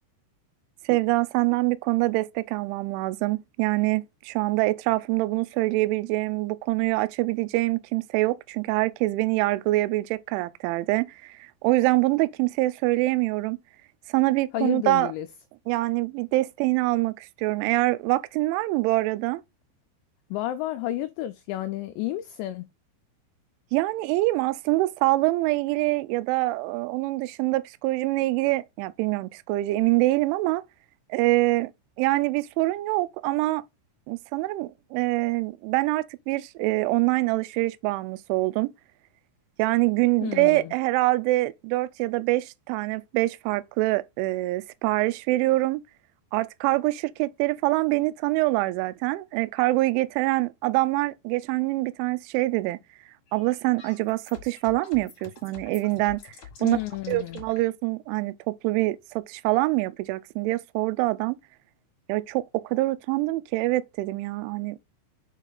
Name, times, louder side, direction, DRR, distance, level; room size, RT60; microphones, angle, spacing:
voice 1, 0.9-13.6 14.1-15.1 15.7-19.4 23.7-30.6 31.1-31.7 32.0-33.6 34.1-38.7 39.6-45.8 46.3-52.8 53.3-56.3 56.6-56.8 57.1-61.4 62.1-64.8, right 20 dB, 85° right, 2.9 m, -25 dB
voice 2, 14.5-15.3 20.3-22.7 40.2-40.7 56.6-57.4, left 14 dB, 90° left, 2.5 m, -31 dB
sound 1, 53.3-57.6, left 7 dB, 60° left, 1.9 m, -47 dB
6.5 x 4.6 x 3.9 m
omnidirectional pair, 5.7 m